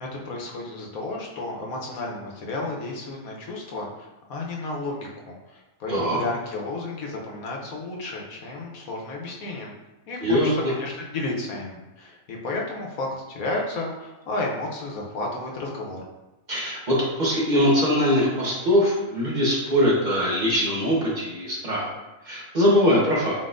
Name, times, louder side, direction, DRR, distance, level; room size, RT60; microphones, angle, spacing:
voice 1, 0.0-9.7 10.1-16.0, left 2 dB, 75° left, -1 dB, 1.3 m, -32 dB
voice 2, 10.2-10.7 16.5-21.9 22.2-23.3, equal, 35° right, -5 dB, 1.1 m, -22 dB
4.2 x 4.1 x 2.5 m, 1.0 s
omnidirectional pair, 1.5 m